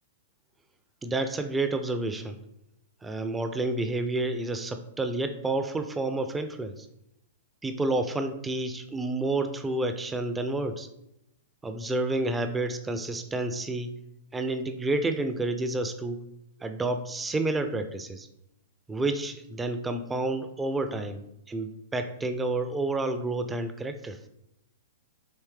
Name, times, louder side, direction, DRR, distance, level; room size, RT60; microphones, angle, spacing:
voice 1, 1.0-2.4 3.0-6.7 7.6-10.9 11.6-14.0 14.3-16.2 16.6-18.3 18.9-21.2 21.5-24.2, right 2 dB, 10° right, 8 dB, 0.4 m, -29 dB
4.3 x 3.2 x 3.2 m, 0.85 s
figure-of-eight pair, 110°, 0 cm